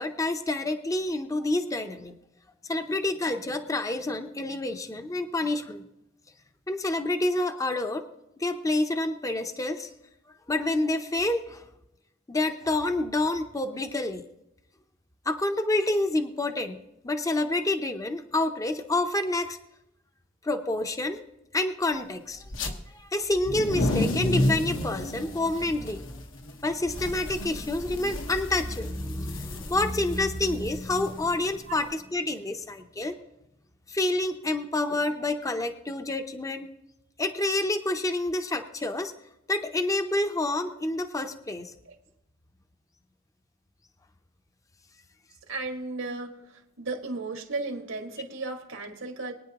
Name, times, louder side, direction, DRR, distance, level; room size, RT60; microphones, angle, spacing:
voice 1, 0.0-2.2 2.6-5.8 6.7-8.0 8.4-9.9 10.5-11.7 12.3-14.2 15.3-19.6 20.4-21.2 21.5-22.4 22.9-26.2 26.6-33.2 33.9-36.7 37.2-39.1 39.5-41.7, left 2 dB, 15° left, 7 dB, 0.6 m, -28 dB
sound 1, 22.4-22.7 23.3-31.8, left 1 dB, 80° left, 1.3 m, -31 dB
voice 2, 45.5-49.3, right 3 dB, 85° right, 3 dB, 1.9 m, -35 dB
22.5 x 9.4 x 2.9 m, 0.90 s
head